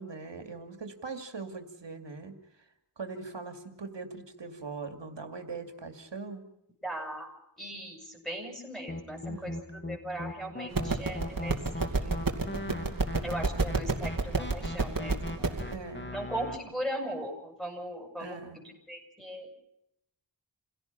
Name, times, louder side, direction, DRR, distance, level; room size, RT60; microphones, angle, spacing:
voice 1, 0.0-2.3 3.0-6.4 9.3-9.6 15.7-16.2 18.2-18.6, right 4 dB, 85° right, 6 dB, 2.5 m, -41 dB
voice 2, 6.8-7.3 7.6-12.2 13.2-15.6 16.1-19.5, right 1 dB, ahead, 2 dB, 7.8 m, -39 dB
sound 1, 8.9-16.6, left 1 dB, 25° left, 2.7 m, -39 dB
sound 2, 10.7-15.7, right 3 dB, 50° right, 2.6 m, -30 dB
28.5 x 17.0 x 5.8 m, 0.80 s
wide cardioid pair, 70°, 42 cm